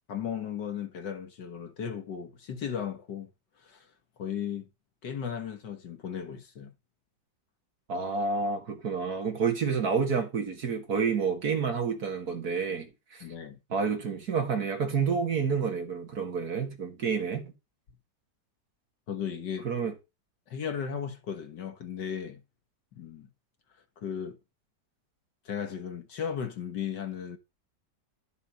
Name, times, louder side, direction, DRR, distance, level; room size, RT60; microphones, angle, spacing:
voice 1, 0.1-3.3 3.6-3.9 4.2-4.7 5.0-6.7 13.2-13.6 19.1-19.7 20.5-22.4 22.9-23.3 24.0-24.4 25.5-27.4, left 8 dB, 85° left, 2.0 m, -36 dB
voice 2, 7.9-13.2 13.7-17.4 19.6-19.9, right 5 dB, 60° right, 2.4 m, -29 dB
11.5 x 6.7 x 4.2 m
omnidirectional pair, 1.8 m